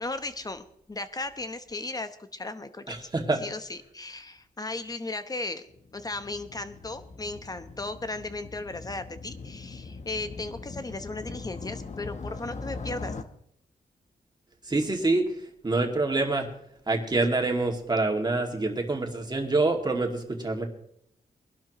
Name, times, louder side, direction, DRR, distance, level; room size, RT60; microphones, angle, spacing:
voice 1, 0.0-3.1 3.4-5.6 5.9-13.1, left 2 dB, 25° left, 10 dB, 1.0 m, -36 dB
voice 2, 2.9-3.4 14.7-15.4 15.6-16.5 16.9-20.6, right 2 dB, 25° right, 2 dB, 2.3 m, -26 dB
Motorcycle, 5.7-13.2, left 3 dB, 45° left, 1.0 m, -41 dB
22.5 x 12.0 x 3.1 m, 0.71 s
wide cardioid pair, 125°, 16 cm